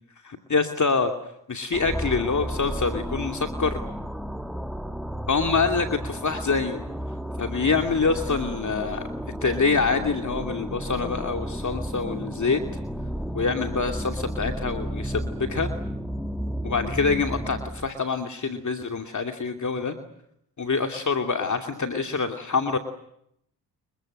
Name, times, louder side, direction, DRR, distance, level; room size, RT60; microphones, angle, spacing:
voice 1, 0.2-1.1 1.5-3.8 5.3-6.8 7.4-9.0 9.4-12.6 13.3-15.7 16.6-20.0 20.6-22.8, left 4 dB, 40° left, 5 dB, 2.7 m, -25 dB
sound 1, 1.7-17.9, equal, ahead, 2.9 m, -33 dB
29.5 x 23.5 x 7.9 m, 0.74 s
supercardioid pair, 55°, 43 cm